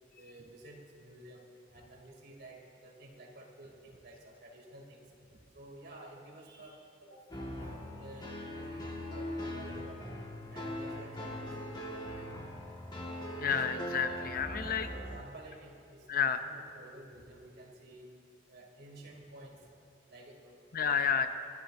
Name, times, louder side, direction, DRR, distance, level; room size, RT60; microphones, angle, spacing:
voice 1, 0.2-1.5 1.7-5.0 5.5-7.2 7.5-8.3 8.6-10.2 10.4-12.1 12.5-12.6 14.2-14.3 14.6-18.1 18.5-19.6 20.1-21.3, right 1 dB, 60° right, -1 dB, 2.8 m, -52 dB
sound 1, 7.3-15.2, equal, 25° left, 1.7 m, -41 dB
voice 2, 13.4-14.9 16.1-16.4 20.7-21.3, left 7 dB, 50° left, 9 dB, 0.6 m, -30 dB
25.5 x 14.0 x 2.7 m, 2.4 s
head